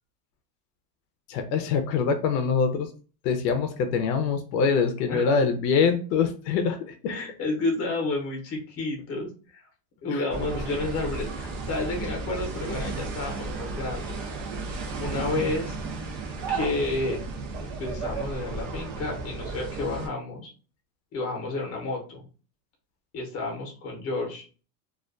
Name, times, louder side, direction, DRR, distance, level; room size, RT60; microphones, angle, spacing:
voice 1, 1.3-2.9 3.2-7.1 10.1-10.2, left 5 dB, 80° left, 7 dB, 0.6 m, -24 dB
voice 2, 7.1-9.7 10.0-14.2 15.0-15.8 16.5-17.2 17.6-20.5 21.1-22.3 23.1-24.4, left 2 dB, 30° left, 0 dB, 0.7 m, -31 dB
sound 1, 10.3-20.1, right 3 dB, 50° right, 0.6 m, -33 dB
2.4 x 2.1 x 2.4 m, 0.37 s
supercardioid pair, 150°, 50 cm